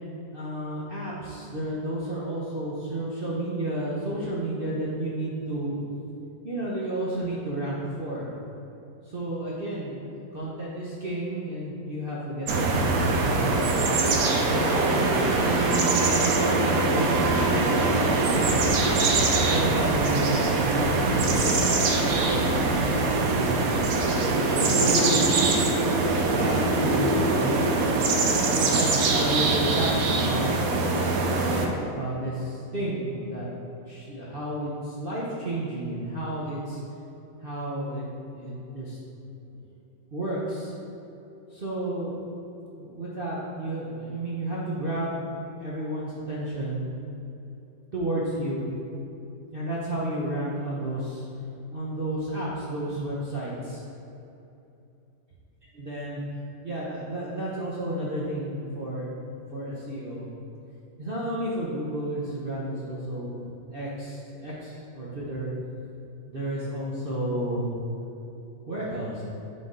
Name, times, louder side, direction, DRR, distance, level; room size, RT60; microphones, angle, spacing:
voice 1, 0.3-5.8 6.4-8.3 9.0-10.0 10.3-13.6 14.4-18.7 19.4-23.5 24.1-25.3 26.1-28.0 28.6-30.5 31.7-33.5 33.9-36.8 37.4-38.1 38.3-39.0 39.5-39.6 40.1-40.7 41.5-42.1 42.8-45.3 45.6-46.8 47.9-48.6 49.5-51.2 51.7-53.8 55.7-56.2 56.6-59.1 59.5-60.3 61.0-63.4 63.7-65.5 66.3-67.7 68.7-69.2, right 1 dB, 45° right, -7 dB, 0.8 m, -31 dB
sound 1, 12.5-31.7, right 3 dB, 65° right, 1.0 m, -23 dB
8.9 x 4.0 x 3.8 m, 2.9 s
omnidirectional pair, 1.9 m